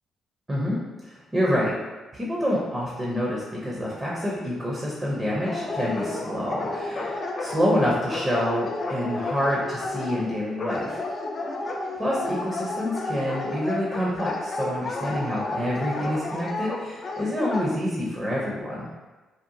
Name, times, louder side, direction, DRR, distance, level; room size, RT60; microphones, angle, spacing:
voice 1, 1.0-1.7 2.1-11.0 12.0-18.9, equal, 20° right, -5 dB, 0.6 m, -27 dB
Dog, 5.5-17.7, left 2 dB, 45° left, 0.3 m, -32 dB
2.7 x 2.1 x 2.6 m, 1.2 s
cardioid pair, 90°, 0 cm